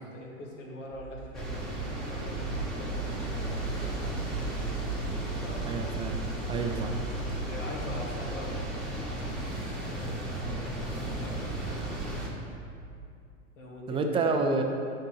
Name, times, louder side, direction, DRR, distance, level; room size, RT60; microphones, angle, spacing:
voice 1, 0.0-4.3 5.4-5.7 6.5-6.8 7.5-8.7 9.0-9.3 9.8-12.1 13.6-14.3, left 1 dB, 70° left, -2 dB, 1.8 m, -44 dB
sound 1, 0.9-13.1, right 2 dB, 85° right, 0.9 m, -40 dB
sound 2, 1.3-12.3, right 1 dB, ahead, 1.5 m, -35 dB
sound 3, 2.3-12.1, left 3 dB, 40° left, 0.9 m, -50 dB
voice 2, 5.6-6.2 6.5-6.9 13.9-14.6, right 3 dB, 15° right, 3 dB, 0.5 m, -28 dB
10.5 x 5.3 x 2.9 m, 2.4 s
hypercardioid pair, 100°, 39 cm